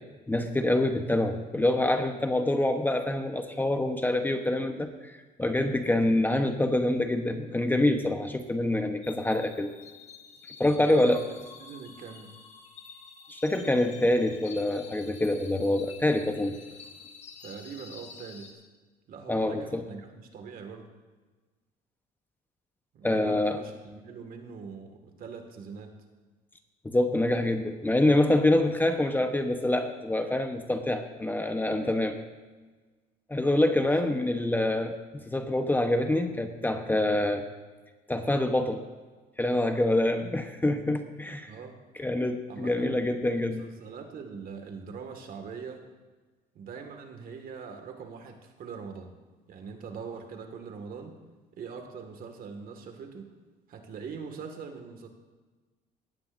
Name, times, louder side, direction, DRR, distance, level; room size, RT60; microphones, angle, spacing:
voice 1, 0.3-9.7 10.6-11.2 13.3-16.6 19.3-19.8 23.0-23.6 26.8-32.2 33.3-37.4 38.1-38.8 39.4-41.5 42.0-43.7, left 1 dB, 10° left, 6 dB, 0.9 m, -26 dB
sound 1, 9.0-18.5, left 5 dB, 40° left, 2.4 m, -49 dB
voice 2, 10.7-12.4 17.4-18.5 19.1-20.9 22.9-26.0 33.7-34.1 41.5-41.8 42.5-43.0 43.4-45.9 46.5-49.1 49.5-51.2 51.6-53.3 53.7-55.1, right 5 dB, 55° right, 5 dB, 1.9 m, -42 dB
18.0 x 13.5 x 2.6 m, 1.3 s
cardioid pair, 110°, 17 cm